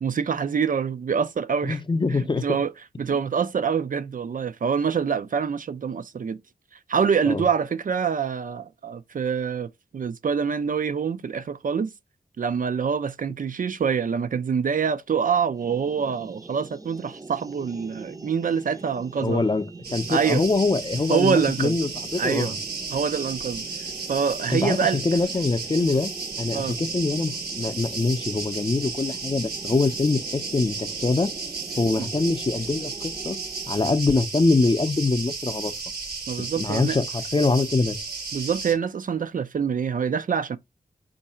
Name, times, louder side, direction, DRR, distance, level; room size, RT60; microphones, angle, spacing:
voice 1, 0.0-1.8 2.1-2.7 3.0-6.4 6.9-11.9 12.4-19.4 20.1-20.4 21.1-21.8 22.2-22.6 22.9-23.7 24.1-25.0 26.5-26.8 32.0-32.1 36.3-37.0 38.3-40.6, right 6 dB, 60° right, 0.4 m, -25 dB
voice 2, 1.7-2.5 7.3-7.4 19.2-19.6 19.9-22.5 24.5-26.1 26.4-31.3 31.8-33.4 33.7-35.7 36.4-37.0 37.3-38.0, left 3 dB, 30° left, 0.6 m, -24 dB
sound 1, 15.5-33.8, right 3 dB, 20° right, 0.6 m, -43 dB
sound 2, 19.8-38.7, right 4 dB, 85° right, 1.3 m, -34 dB
4.6 x 2.6 x 4.2 m
wide cardioid pair, 65°, 16 cm